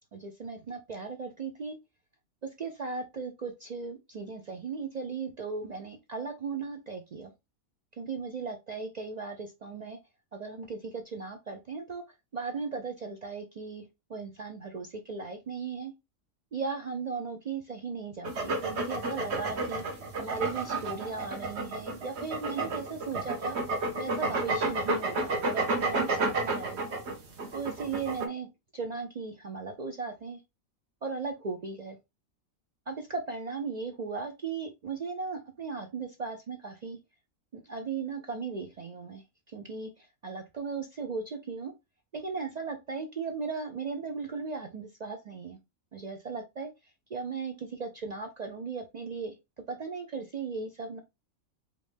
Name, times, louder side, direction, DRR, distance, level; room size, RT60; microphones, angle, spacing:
voice 1, 0.1-1.8 2.4-7.3 8.0-10.0 10.3-12.0 12.3-15.9 16.5-23.6 24.0-27.0 27.5-28.5 28.7-30.4 31.0-32.0 32.9-37.0 37.5-41.7 42.1-45.6 45.9-49.3 49.7-51.0, right 4 dB, 70° right, 0.4 m, -37 dB
sound 1, 18.2-28.3, right 2 dB, 55° right, 1.2 m, -31 dB
4.9 x 2.7 x 3.3 m
omnidirectional pair, 1.4 m